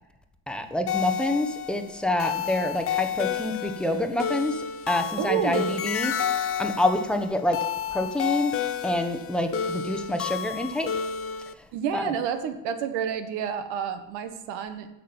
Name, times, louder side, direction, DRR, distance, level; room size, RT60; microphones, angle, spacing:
voice 1, 0.5-7.6 7.9-10.9 11.9-12.0, left 1 dB, ahead, 6 dB, 1.0 m, -27 dB
sound 1, 0.9-11.5, left 8 dB, 30° left, 0.5 m, -30 dB
voice 2, 5.2-5.8 11.7-14.9, right 8 dB, 65° right, 9 dB, 1.4 m, -29 dB
8.5 x 6.3 x 7.1 m, 0.93 s
supercardioid pair, 105°, 47 cm